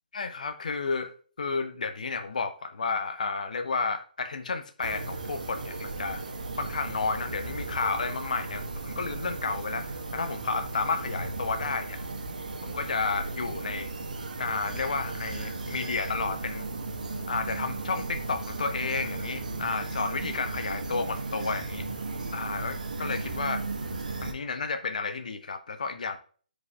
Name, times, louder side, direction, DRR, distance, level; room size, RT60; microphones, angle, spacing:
voice 1, 0.1-6.2 6.6-12.0 12.6-13.9 14.4-16.7 17.3-21.9 22.3-23.6 24.2-26.2, left 4 dB, 60° left, 8 dB, 1.0 m, -32 dB
sound 1, 4.8-24.3, right 3 dB, 60° right, 1.4 m, -35 dB
14.0 x 5.2 x 2.4 m, 0.41 s
figure-of-eight pair, 135°, 5 cm